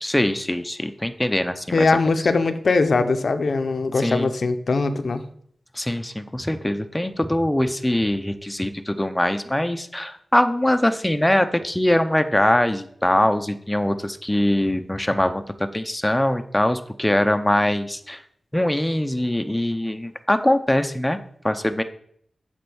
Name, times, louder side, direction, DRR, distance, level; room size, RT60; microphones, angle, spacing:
voice 1, 0.0-1.9 4.0-4.3 5.8-15.4 15.7-18.2 18.5-21.2 21.4-21.8, left 1 dB, 10° left, 8 dB, 0.7 m, -22 dB
voice 2, 1.7-5.2, left 3 dB, 70° left, 9 dB, 0.7 m, -21 dB
7.7 x 4.4 x 7.0 m, 0.66 s
wide cardioid pair, 70°, 0 cm